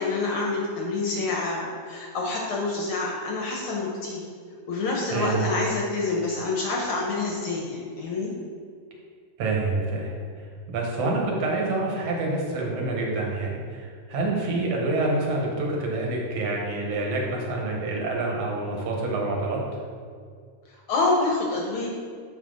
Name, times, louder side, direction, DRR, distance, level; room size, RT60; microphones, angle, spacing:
voice 1, 0.0-4.2 4.7-8.3 20.7-21.9, left 3 dB, 70° left, -2 dB, 1.3 m, -27 dB
voice 2, 5.1-5.5 9.4-10.1 10.7-19.6, right 2 dB, 65° right, -1 dB, 2.1 m, -27 dB
7.4 x 5.6 x 3.8 m, 2.1 s
omnidirectional pair, 3.3 m